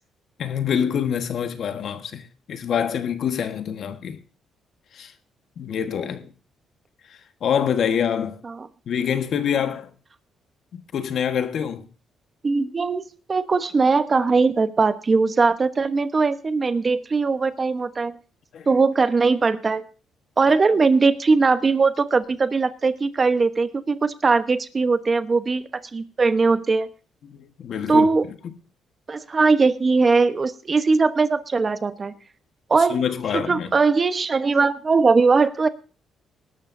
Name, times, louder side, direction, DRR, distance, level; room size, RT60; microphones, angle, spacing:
voice 1, 0.4-4.2 4.9-5.1 5.6-6.3 7.4-8.4 8.9-9.9 10.7-11.9 18.5-18.7 27.2-28.6 32.9-33.7, left 8 dB, 65° left, 1.4 m, -26 dB
voice 2, 12.4-18.2 18.7-19.8 20.4-26.9 27.9-28.3 29.1-32.1 32.7-33.0 33.3-35.7, right 4 dB, 35° right, 1.0 m, -20 dB
20.0 x 12.0 x 2.7 m
cardioid pair, 90°, 0 cm